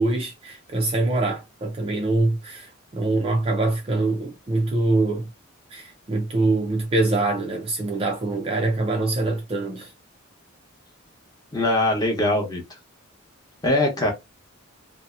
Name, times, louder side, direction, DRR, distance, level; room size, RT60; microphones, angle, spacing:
voice 1, 0.0-5.3 5.7-9.9, right 2 dB, 25° right, 0.3 m, -24 dB
voice 2, 11.5-12.6 13.6-14.1, left 1 dB, 20° left, 0.8 m, -21 dB
2.7 x 2.0 x 2.3 m
head